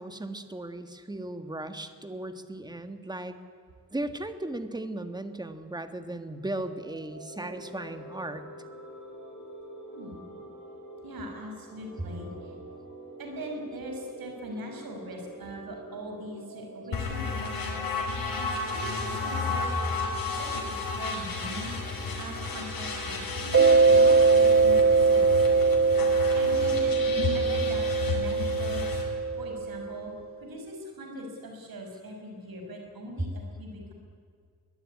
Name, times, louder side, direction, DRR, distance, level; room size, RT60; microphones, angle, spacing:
voice 1, 0.0-3.3 3.9-8.4, right 1 dB, 10° right, 9 dB, 1.6 m, -36 dB
sound 1, 6.6-25.9, right 2 dB, 60° right, 7.0 m, -45 dB
voice 2, 9.9-10.4 11.0-12.5 13.2-18.3 18.6-19.9 20.2-21.7 22.2-25.8 26.3-26.9 27.3-30.1 30.4-33.9, equal, 85° right, 2 dB, 5.6 m, -41 dB
sound 2, 16.9-29.0, left 4 dB, 80° left, 5.9 m, -33 dB
Mallet percussion, 23.5-29.9, right 4 dB, 40° right, 1.3 m, -22 dB
23.0 x 20.0 x 9.8 m, 2.2 s
wide cardioid pair, 150°, 35 cm